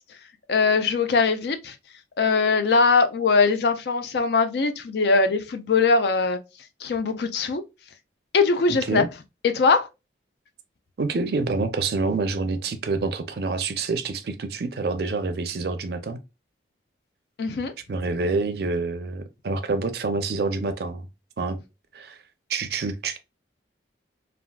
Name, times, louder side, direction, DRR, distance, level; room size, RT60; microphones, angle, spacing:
voice 1, 0.5-1.8 2.2-6.4 6.8-7.6 8.3-9.0 9.4-9.9 17.4-17.7, left 4 dB, 60° left, 0.4 m, -21 dB
voice 2, 8.7-9.1 11.0-16.2 17.9-21.1 21.4-21.6 21.9-22.2 22.5-23.2, right 3 dB, 60° right, 0.4 m, -27 dB
3.4 x 2.4 x 2.2 m
head